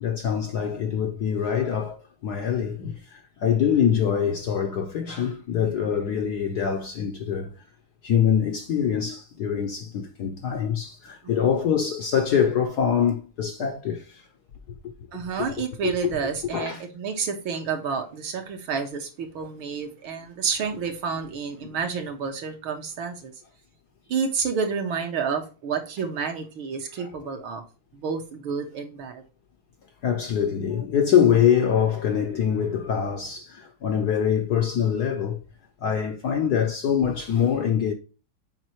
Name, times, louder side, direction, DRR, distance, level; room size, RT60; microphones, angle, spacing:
voice 1, 0.0-2.0 2.2-7.5 8.0-14.0 15.4-15.5 15.8-15.9 16.5-16.8 19.4-19.5 27.0-27.1 30.0-35.4 35.8-37.9, left 8 dB, 70° left, 1.0 m, -24 dB
voice 2, 11.2-11.6 15.1-23.3 24.1-27.6 27.9-29.2, right 6 dB, 70° right, 2.1 m, -30 dB
7.4 x 5.1 x 3.1 m
omnidirectional pair, 2.4 m